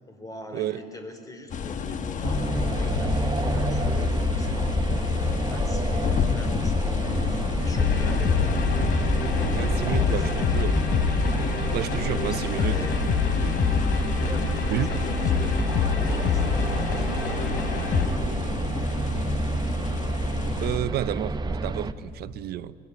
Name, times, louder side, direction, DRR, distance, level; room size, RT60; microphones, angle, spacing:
voice 1, 0.1-2.4 2.8-4.8 5.2-8.5 9.2-10.5 11.7-13.0 14.2-15.5 15.8-18.6, left 1 dB, 20° left, 3.8 m, -42 dB
sound 1, 1.5-20.8, left 7 dB, 50° left, 1.3 m, -30 dB
sound 2, 2.2-21.9, right 3 dB, 25° right, 1.0 m, -29 dB
sound 3, 7.8-18.1, left 6 dB, 70° left, 3.4 m, -26 dB
voice 2, 9.5-10.8 11.7-12.8 14.7-14.9 20.6-22.7, right 13 dB, 70° right, 0.8 m, -30 dB
24.5 x 21.0 x 8.7 m
cardioid pair, 110°, 17 cm